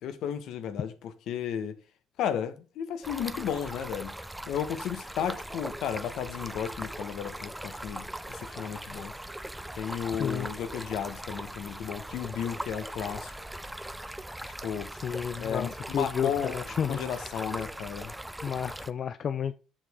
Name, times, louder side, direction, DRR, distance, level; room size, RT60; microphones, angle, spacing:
voice 1, 0.0-1.8 2.2-4.1 4.5-9.1 9.7-13.3 14.6-14.9 15.4-18.1, left 8 dB, 75° left, 1.1 m, -34 dB
Stream, 3.0-18.9, right 1 dB, 5° right, 0.5 m, -40 dB
voice 2, 15.0-17.0 18.4-19.5, left 7 dB, 45° left, 0.4 m, -31 dB
7.7 x 6.3 x 3.5 m
cardioid pair, 105°, 0 cm